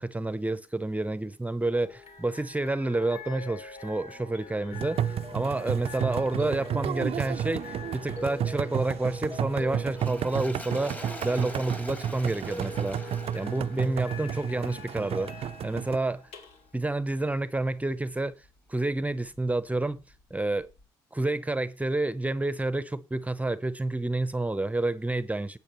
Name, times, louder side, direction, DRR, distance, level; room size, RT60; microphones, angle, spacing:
voice 1, 0.0-16.3 16.7-18.4 18.7-20.0 20.3-20.7 21.1-25.6, right 2 dB, 15° right, 0.9 m, -29 dB
sound 1, 1.7-20.8, left 2 dB, 70° left, 2.7 m, -44 dB
sound 2, 4.7-16.0, right 10 dB, 60° right, 0.5 m, -32 dB
Toilet flush, 9.9-15.3 16.0-16.1, left 1 dB, 15° left, 1.7 m, -44 dB
18.0 x 8.4 x 3.1 m
supercardioid pair, 55°, 11 cm